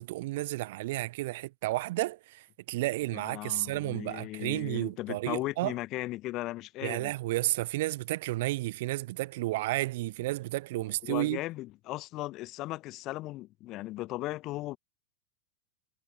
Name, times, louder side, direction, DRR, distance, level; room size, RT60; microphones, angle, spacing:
voice 1, 0.0-5.7 6.8-11.4, right 18 dB, 50° right, 0.4 m, -32 dB
voice 2, 3.1-7.1 10.8-14.8, left 18 dB, 35° left, 1.3 m, -37 dB
figure-of-eight pair, 90°, 0 cm